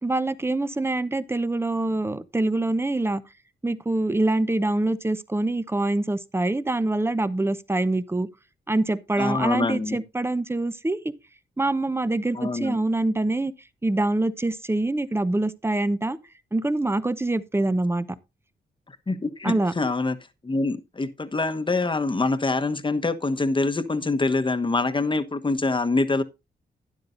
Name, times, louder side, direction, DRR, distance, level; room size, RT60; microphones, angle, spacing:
voice 1, 0.0-3.2 3.6-8.3 8.7-11.0 11.6-13.5 13.8-16.2 16.5-18.1 19.4-19.7, right 2 dB, 15° right, 0.8 m, -25 dB
voice 2, 9.2-10.0 12.3-12.8 18.9-20.2 20.4-26.2, left 3 dB, 25° left, 1.2 m, -25 dB
12.0 x 9.6 x 2.6 m
cardioid pair, 60°, 19 cm